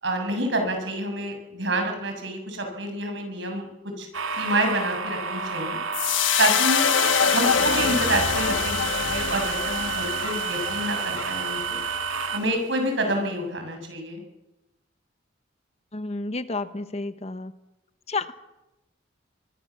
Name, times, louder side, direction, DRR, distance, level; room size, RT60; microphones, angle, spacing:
voice 1, 0.0-3.7 4.0-4.1 4.3-5.8 6.4-6.9 7.3-11.8 12.3-14.2, right 1 dB, 65° right, 4 dB, 6.9 m, -28 dB
sound 1, 4.1-12.4, right 5 dB, 85° right, 2.0 m, -30 dB
sound 2, 5.9-12.3, left 7 dB, 75° left, 1.3 m, -25 dB
voice 2, 15.9-17.5 18.1-18.3, left 3 dB, 30° left, 12 dB, 0.9 m, -31 dB
25.0 x 21.5 x 7.2 m, 0.98 s
head